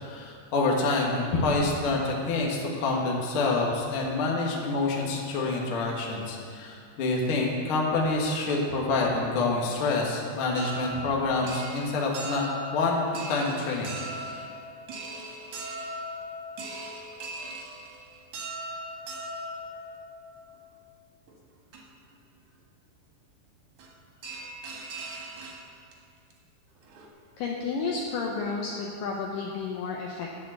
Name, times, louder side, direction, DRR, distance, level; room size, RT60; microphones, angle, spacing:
voice 1, 0.0-13.0 13.3-13.9, left 3 dB, 55° left, -2 dB, 1.5 m, -27 dB
sound 1, 10.5-20.6 21.3-21.4 21.7-21.8 23.8-23.9 24.2-25.9 26.3-26.4 26.7-27.1, right 1 dB, 60° right, 2.4 m, -39 dB
voice 2, 27.4-30.4, left 4 dB, 75° left, -1 dB, 2.0 m, -32 dB
10.5 x 7.0 x 7.7 m, 2.3 s
omnidirectional pair, 4.7 m